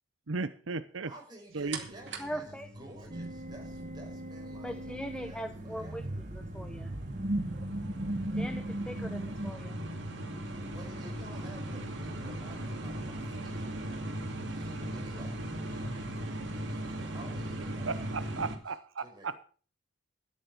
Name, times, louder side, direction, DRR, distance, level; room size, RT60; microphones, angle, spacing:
voice 1, 0.3-1.1 1.5-1.8 17.9-19.4, right 4 dB, 85° right, 13 dB, 0.8 m, -35 dB
voice 2, 1.1-6.2 10.6-14.0 14.5-18.1 18.3-18.4 19.0-19.3, right 1 dB, 20° right, 0 dB, 5.1 m, -52 dB
sound 1, 1.7-18.6, right 1 dB, 65° right, 2.6 m, -39 dB
voice 3, 2.2-2.7 4.5-6.1 6.3-6.9 8.4-9.8, equal, 5° left, 8 dB, 0.7 m, -40 dB
sound 2, 3.1-9.5, right 1 dB, 40° right, 1.0 m, -37 dB
13.0 x 10.0 x 5.9 m, 0.40 s
head